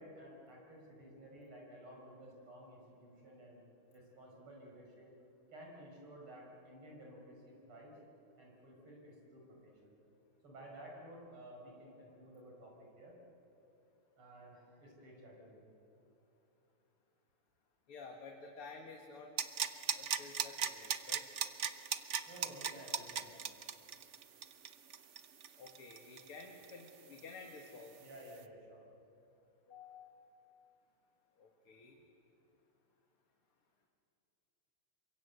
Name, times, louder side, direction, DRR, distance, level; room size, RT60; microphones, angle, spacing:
voice 1, 0.0-3.6 3.9-5.1 5.5-7.9 8.4-10.0 10.4-13.2 14.2-15.7 22.3-23.3 28.0-28.8, right 1 dB, 80° right, -1 dB, 6.2 m, -54 dB
voice 2, 17.9-19.3 19.9-21.3 25.6-28.0 29.7-30.1 31.4-32.0, left 4 dB, 85° left, 1 dB, 2.7 m, -52 dB
sound 1, 19.4-26.9 27.2-27.3, right 7 dB, 55° right, 0.8 m, -37 dB
27.5 x 23.5 x 8.2 m, 3.0 s
omnidirectional pair, 2.4 m